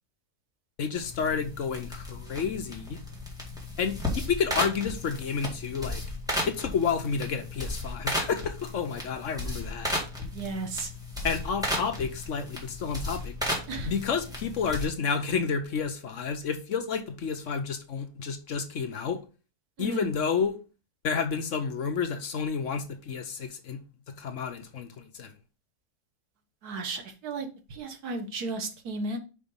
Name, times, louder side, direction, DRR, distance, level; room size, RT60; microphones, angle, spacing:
voice 1, 0.8-3.0 3.8-6.0 6.5-9.9 11.2-13.3 13.9-19.2 19.8-20.6 21.0-23.8 24.1-25.3, left 6 dB, 60° left, 1.1 m, -30 dB
sound 1, 1.0-14.9, left 1 dB, ahead, 2.0 m, -35 dB
voice 2, 10.3-10.9 13.7-13.9 19.8-20.1 26.6-29.2, right 3 dB, 80° right, 1.7 m, -34 dB
5.1 x 5.1 x 5.4 m
omnidirectional pair, 1.6 m